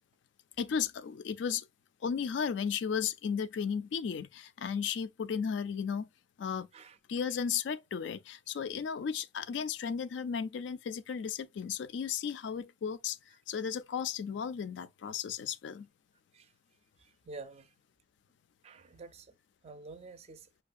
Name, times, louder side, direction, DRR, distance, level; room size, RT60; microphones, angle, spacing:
voice 1, 0.6-1.6 2.0-6.1 6.4-6.7 7.1-13.2 13.5-15.9, left 7 dB, 75° left, 0.3 m, -34 dB
voice 2, 17.0-17.8 18.6-19.3 19.6-20.5, right 3 dB, 35° right, 0.4 m, -49 dB
5.6 x 2.3 x 2.4 m
head